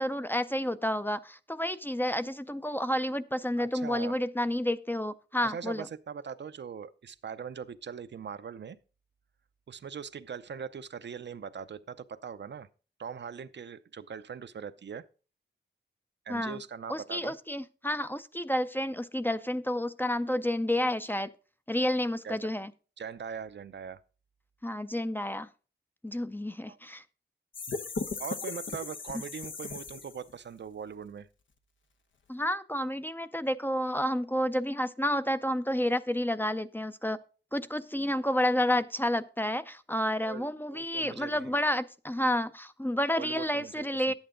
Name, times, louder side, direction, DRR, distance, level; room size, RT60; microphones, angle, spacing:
voice 1, 0.0-5.9 16.3-16.6 16.9-21.3 21.7-22.7 24.6-25.5 26.0-27.0 32.3-37.2 37.5-44.1, left 1 dB, 10° left, 0.5 m, -30 dB
voice 2, 3.6-4.2 5.4-8.8 9.7-12.7 13.0-15.0 16.3-17.3 22.2-22.5 23.0-24.0 26.7-26.8 28.2-31.3 40.3-41.6 43.2-44.1, right 7 dB, 70° right, 0.6 m, -41 dB
sound 1, 27.5-30.4, left 4 dB, 85° left, 1.1 m, -37 dB
11.0 x 8.9 x 3.8 m
wide cardioid pair, 115°, 19 cm